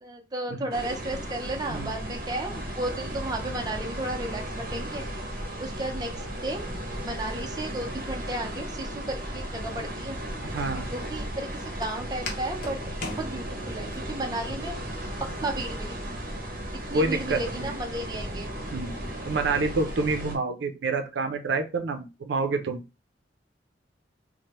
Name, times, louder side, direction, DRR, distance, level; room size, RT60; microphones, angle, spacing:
voice 1, 0.0-4.4 4.7-5.0 5.6-6.6 7.0-10.2 10.9-12.8 13.1-14.7 15.2-16.0 16.9-18.5, right 1 dB, 20° right, 2 dB, 0.5 m, -33 dB
sound 1, 0.7-20.4, right 1 dB, 50° right, 0.8 m, -35 dB
Walk footsteps, 9.4-14.0, left 3 dB, 50° left, 0.7 m, -41 dB
voice 2, 10.4-10.9 16.9-17.7 18.7-18.9 19.3-22.8, right 3 dB, 75° right, 6 dB, 0.5 m, -28 dB
3.2 x 2.1 x 2.9 m, 0.27 s
head